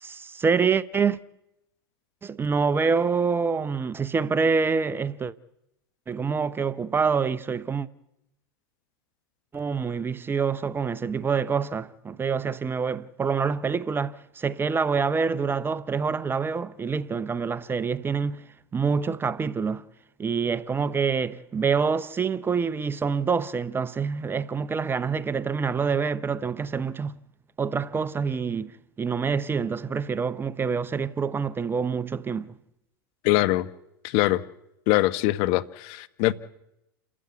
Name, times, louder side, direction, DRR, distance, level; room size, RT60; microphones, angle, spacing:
voice 1, 0.0-1.2 2.2-5.3 6.1-7.9 9.5-18.4 18.7-19.8 20.2-27.2 27.6-28.7 29.0-32.6, right 5 dB, 20° right, 0.8 m, -26 dB
voice 2, 33.2-33.7 34.0-34.4 34.9-36.3, left 17 dB, 55° left, 1.1 m, -23 dB
29.0 x 13.5 x 8.5 m
hypercardioid pair, 100°, 12 cm